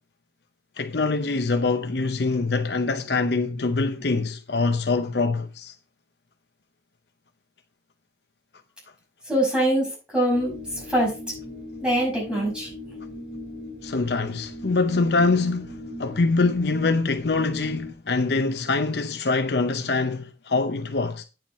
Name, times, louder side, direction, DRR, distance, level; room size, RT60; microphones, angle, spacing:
voice 1, 0.8-5.8 13.8-21.2, left 3 dB, 65° left, 0.7 m, -24 dB
voice 2, 9.3-10.5 10.9-11.1 11.8-12.7, right 1 dB, 5° right, 5.7 m, -23 dB
sound 1, 10.3-17.9, left 2 dB, 45° right, 5.2 m, -39 dB
8.9 x 7.8 x 4.2 m
head